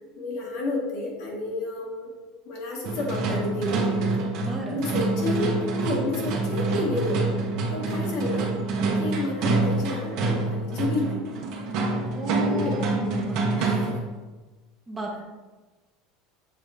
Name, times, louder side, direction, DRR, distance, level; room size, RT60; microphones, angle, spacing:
voice 1, 0.2-2.1 2.4-4.3 4.7-7.3 7.7-8.5 8.9-11.2 12.5-12.8 13.6-14.0, left 2 dB, 65° left, -2 dB, 1.7 m, -30 dB
sound 1, 2.8-14.1, right 3 dB, 55° right, 1.2 m, -26 dB
voice 2, 4.4-4.8 12.1-13.4 14.9-15.2, right 1 dB, 15° right, -2 dB, 1.1 m, -34 dB
6.8 x 4.0 x 3.5 m, 1.2 s
supercardioid pair, 140°, 0 cm